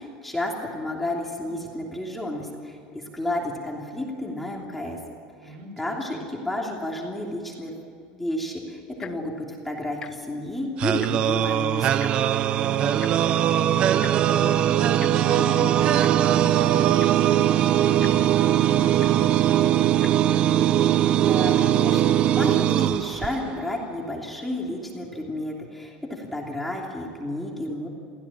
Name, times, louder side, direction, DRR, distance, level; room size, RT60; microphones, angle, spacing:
voice 1, 0.0-5.0 5.4-7.7 8.1-12.1 21.1-27.9, left 1 dB, 5° left, -1 dB, 3.0 m, -31 dB
voice 2, 5.4-6.2 12.5-13.6 14.3-19.7, right 2 dB, 70° right, 6 dB, 4.8 m, -38 dB
Tick-tock, 8.9-9.3 9.9-10.1 10.4-10.6 10.8-11.4 12.0-12.1 13.0-13.1 14.0-14.1 15.0-15.1 16.0-16.1 16.7-16.8 17.0-17.3 18.0-18.1 19.0-19.1 19.9-20.1 20.8-20.9, left 7 dB, 25° left, 1.2 m, -39 dB
sound 1, 10.8-23.7, right 11 dB, 35° right, 0.6 m, -21 dB
24.0 x 16.0 x 8.7 m, 2.4 s
cardioid pair, 160°, 3 cm